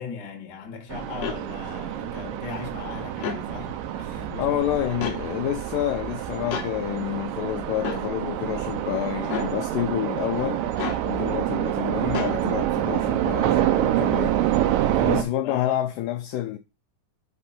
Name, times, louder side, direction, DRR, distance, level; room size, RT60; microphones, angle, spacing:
voice 1, 0.0-5.0 11.1-11.3 14.7-15.7, left 5 dB, 55° left, 1.2 m, -38 dB
sound 1, 0.9-15.2, right 12 dB, 80° right, 2.2 m, -27 dB
sound 2, 1.2-1.4 3.1-3.4 5.0-5.2 6.5-6.7 7.8-8.0 9.3-9.5 10.8-11.0 12.1-12.4, left 7 dB, 70° left, 1.6 m, -30 dB
voice 2, 4.1-10.7 11.0-14.5 15.1-16.6, left 13 dB, 85° left, 1.9 m, -29 dB
5.8 x 4.4 x 5.6 m
omnidirectional pair, 4.5 m